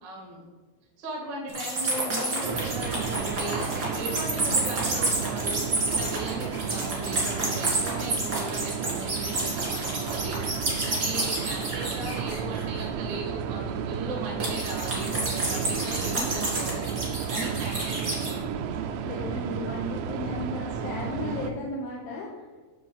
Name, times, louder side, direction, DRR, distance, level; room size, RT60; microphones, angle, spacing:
voice 1, 0.0-0.4 1.0-18.5, right 1 dB, 70° right, 0 dB, 1.0 m, -37 dB
sound 1, 1.5-12.8 14.4-18.3, right 2 dB, 40° right, 1.5 m, -30 dB
sound 2, 2.4-21.5, right 7 dB, 90° right, 2.4 m, -32 dB
voice 2, 19.0-22.3, left 2 dB, 75° left, -3 dB, 2.1 m, -34 dB
9.4 x 4.0 x 7.1 m, 1.3 s
omnidirectional pair, 5.6 m